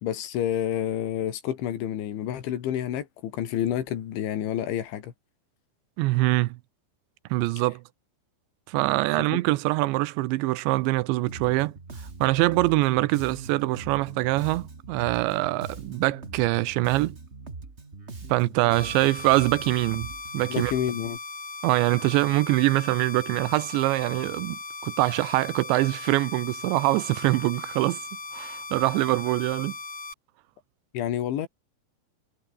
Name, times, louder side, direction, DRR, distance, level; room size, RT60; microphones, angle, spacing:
voice 1, 0.0-5.1 9.3-9.4 20.5-21.2 30.9-31.5, left 10 dB, 85° left, 4.9 m, -29 dB
voice 2, 6.0-6.6 7.3-7.8 8.7-11.7 12.2-17.2 18.3-20.7 21.6-28.0 28.3-29.7, right 20 dB, 90° right, 3.0 m, -24 dB
Bass guitar, 11.3-21.2, right 3 dB, 25° right, 1.4 m, -42 dB
sound 1, 18.7-30.1, left 3 dB, 30° left, 6.5 m, -38 dB
omnidirectional pair, 5.2 m